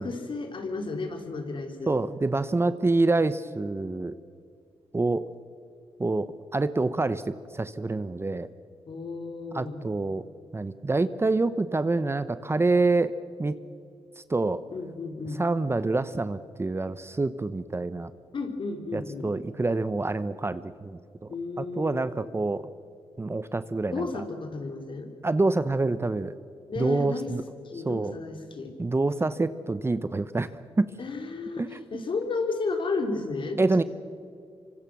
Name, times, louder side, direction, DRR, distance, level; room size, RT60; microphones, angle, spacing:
voice 1, 0.0-1.9 8.9-9.8 14.7-15.4 18.3-19.3 21.3-22.0 23.9-25.1 26.7-27.3 27.6-28.7 31.0-33.6, left 3 dB, 55° left, 4 dB, 3.6 m, -33 dB
voice 2, 1.9-4.2 4.9-5.2 6.0-8.5 9.5-10.2 10.5-13.1 13.4-13.5 14.2-14.6 15.4-18.1 18.9-21.0 21.6-22.7 23.2-24.2 25.2-26.3 26.8-27.4 27.8-28.1 28.8-30.5 30.8-30.9 31.6-31.8 33.6-33.8, right 3 dB, 25° right, 13 dB, 0.9 m, -26 dB
26.0 x 24.5 x 6.2 m, 2.4 s
cardioid pair, 70°, 10 cm